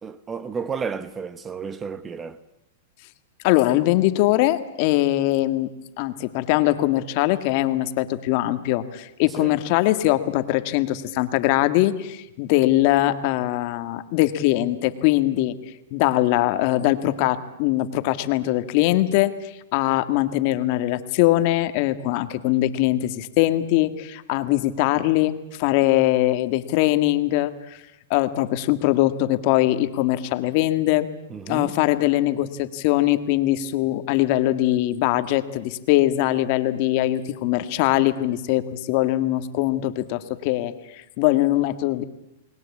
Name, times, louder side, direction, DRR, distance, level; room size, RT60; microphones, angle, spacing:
voice 1, 0.0-2.4 9.4-9.6 31.3-31.7, right 6 dB, 15° right, 1.0 m, -32 dB
voice 2, 3.4-5.7 6.0-15.5 15.9-27.8 28.1-31.1 31.5-42.0, left 16 dB, 45° left, 1.7 m, -22 dB
29.5 x 20.0 x 8.5 m
hypercardioid pair, 140°, 0 cm